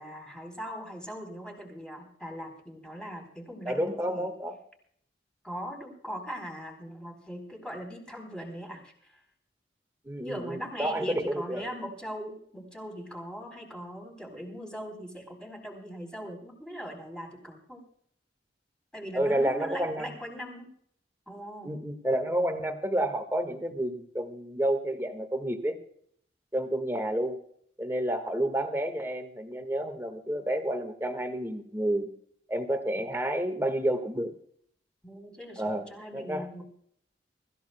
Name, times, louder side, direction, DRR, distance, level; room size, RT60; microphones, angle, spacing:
voice 1, 0.0-4.3 5.4-9.2 10.2-17.8 18.9-20.7 21.3-21.8 35.0-36.6, equal, 5° left, 2 dB, 4.0 m, -40 dB
voice 2, 3.6-4.5 10.0-11.6 19.1-20.1 21.6-25.8 26.5-27.4 27.8-32.1 32.5-34.3 35.6-36.5, right 1 dB, 15° right, 6 dB, 1.6 m, -30 dB
24.5 x 14.5 x 2.2 m, 0.65 s
head